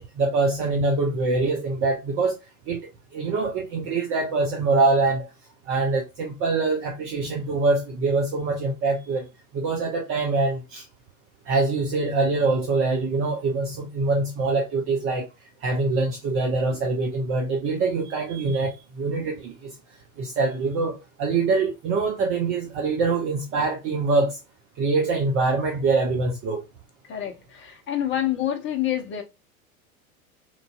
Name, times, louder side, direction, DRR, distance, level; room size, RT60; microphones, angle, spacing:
voice 1, 0.0-2.4 2.7-5.3 5.7-9.3 9.5-10.9 11.5-15.3 15.6-19.8 20.2-24.4 24.8-26.6, right 3 dB, 30° right, 0.6 m, -24 dB
voice 2, 27.1-29.2, left 11 dB, 25° left, 0.7 m, -27 dB
3.0 x 2.5 x 2.3 m
figure-of-eight pair, 85°, 43 cm